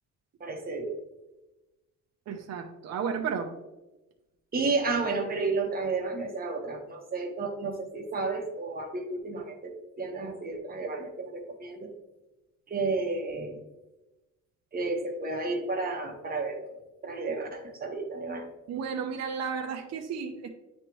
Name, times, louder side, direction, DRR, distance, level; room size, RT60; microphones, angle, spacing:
voice 1, 0.4-0.9 4.5-11.9 12.7-13.6 14.7-16.7 17.0-18.5, right 3 dB, 30° right, 2 dB, 1.3 m, -32 dB
voice 2, 2.3-3.5 18.7-20.5, right 6 dB, 60° right, 3 dB, 0.7 m, -33 dB
9.8 x 3.3 x 3.1 m, 1.0 s
cardioid pair, 115°, 30 cm